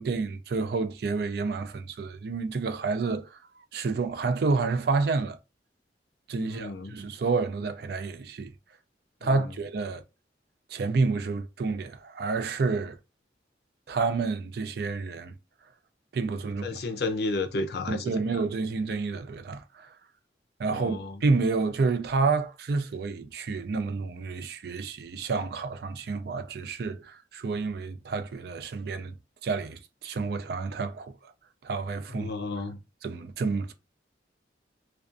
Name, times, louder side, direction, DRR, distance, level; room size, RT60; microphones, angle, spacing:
voice 1, 0.0-3.4 3.7-5.4 6.3-8.5 9.2-10.0 10.7-13.0 13.9-15.3 16.1-16.8 17.9-19.9 20.6-29.1 29.4-31.3 31.6-32.3 33.0-33.7, right 4 dB, 60° right, 0.4 m, -29 dB
voice 2, 6.4-6.9 9.2-9.5 16.6-18.4 20.7-21.2 32.1-32.8, left 3 dB, 60° left, 0.5 m, -33 dB
2.5 x 2.3 x 2.4 m
head